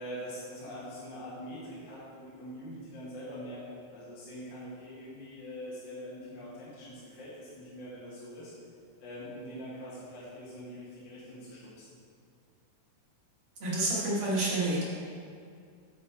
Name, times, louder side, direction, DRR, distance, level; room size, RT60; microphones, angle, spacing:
voice 1, 0.0-8.5 9.0-11.9, equal, 50° left, -9 dB, 1.5 m, -43 dB
voice 2, 13.6-14.8, right 2 dB, 50° right, -6 dB, 1.7 m, -28 dB
8.4 x 5.4 x 4.4 m, 2.3 s
omnidirectional pair, 3.8 m